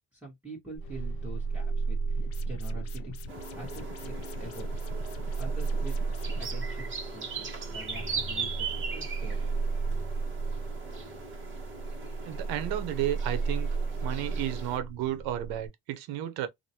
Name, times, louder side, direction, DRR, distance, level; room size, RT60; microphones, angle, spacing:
voice 1, 0.1-3.2 3.5-4.7 5.4-9.7, right 1 dB, 5° right, 1.5 m, -45 dB
sound 1, 0.7-15.7, right 4 dB, 70° left, 1.2 m, -34 dB
sound 2, 2.2-6.6, left 9 dB, 40° left, 0.5 m, -47 dB
sound 3, 3.3-14.8, right 5 dB, 30° right, 1.5 m, -40 dB
voice 2, 12.2-13.7 14.0-16.5, right 12 dB, 80° right, 0.8 m, -32 dB
2.9 x 2.5 x 2.8 m
cardioid pair, 110°, 37 cm